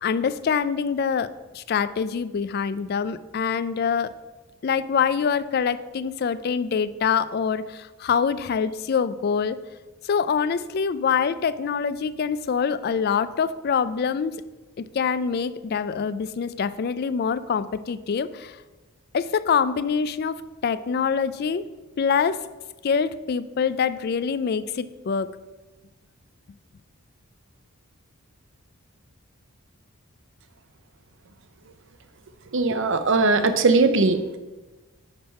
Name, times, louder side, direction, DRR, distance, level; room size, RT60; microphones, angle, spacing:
voice 1, 0.0-4.1 4.6-9.6 10.0-14.4 14.9-18.6 19.1-21.6 22.0-22.4 22.8-25.3, left 6 dB, 45° left, 14 dB, 0.3 m, -25 dB
voice 2, 32.5-34.4, right 3 dB, 55° right, 9 dB, 0.6 m, -20 dB
9.9 x 3.5 x 5.4 m, 1.2 s
head